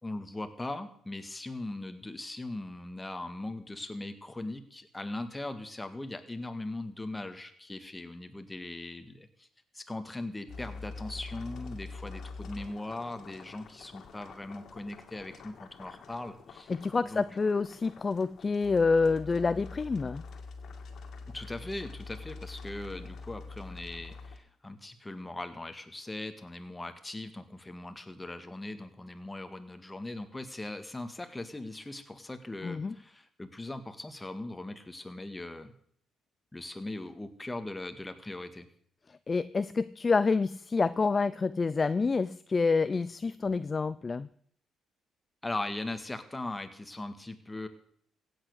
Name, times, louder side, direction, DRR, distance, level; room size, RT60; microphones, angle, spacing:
voice 1, 0.0-9.5 9.7-16.7 17.0-17.3 21.3-35.7 36.5-38.7 45.4-47.7, left 2 dB, 15° left, 9 dB, 1.7 m, -40 dB
sound 1, 10.5-24.4, left 4 dB, 65° left, 2.2 m, -45 dB
voice 2, 16.7-20.2 32.6-32.9 39.3-44.3, left 4 dB, 30° left, 15 dB, 0.4 m, -28 dB
16.0 x 8.7 x 6.5 m, 0.62 s
cardioid pair, 90°, 0 cm